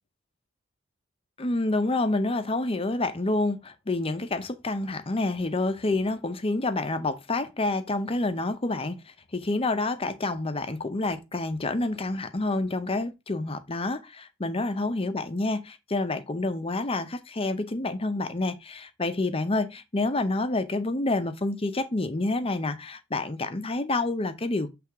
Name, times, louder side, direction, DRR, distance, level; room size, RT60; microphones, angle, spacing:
voice 1, 1.4-24.7, left 2 dB, 30° left, 0.7 m, -28 dB
7.6 x 3.4 x 4.6 m
head